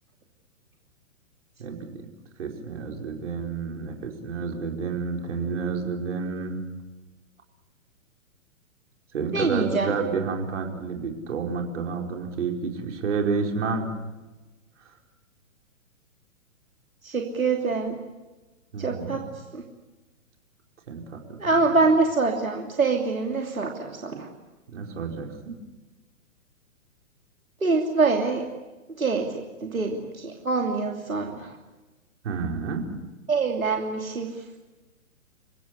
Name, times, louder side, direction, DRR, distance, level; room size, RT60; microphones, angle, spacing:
voice 1, 1.6-1.9 2.4-6.6 9.1-13.9 14.9-15.0 18.7-19.2 20.9-21.6 24.7-25.5 32.2-32.8, right 5 dB, 60° right, 2 dB, 5.1 m, -30 dB
voice 2, 9.3-9.9 17.0-17.9 18.8-19.2 19.5-19.6 21.4-24.3 27.6-28.4 29.0-31.5 33.3-34.3, right 4 dB, 90° right, 2 dB, 3.0 m, -25 dB
28.0 x 16.5 x 10.0 m, 1.1 s
figure-of-eight pair, 125°, 40 cm